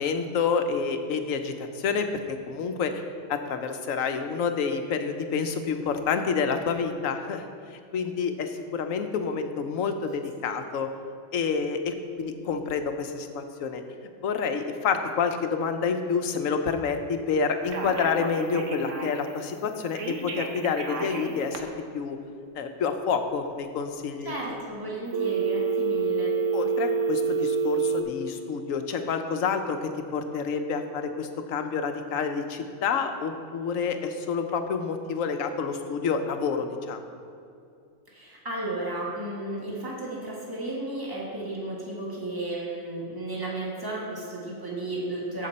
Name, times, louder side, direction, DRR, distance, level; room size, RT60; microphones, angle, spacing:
voice 1, 0.0-3.0 3.3-7.5 7.9-10.9 11.3-13.8 14.2-21.7 21.9-22.2 22.5-24.3 26.5-37.0, left 5 dB, 85° left, 7 dB, 1.2 m, -28 dB
Telephone, 17.6-19.3 19.9-21.6 25.1-28.0, right 5 dB, 70° right, 1.3 m, -28 dB
voice 2, 24.2-26.3 38.1-45.5, right 1 dB, 15° right, -5 dB, 2.0 m, -33 dB
14.0 x 6.0 x 4.2 m, 2.5 s
omnidirectional pair, 1.3 m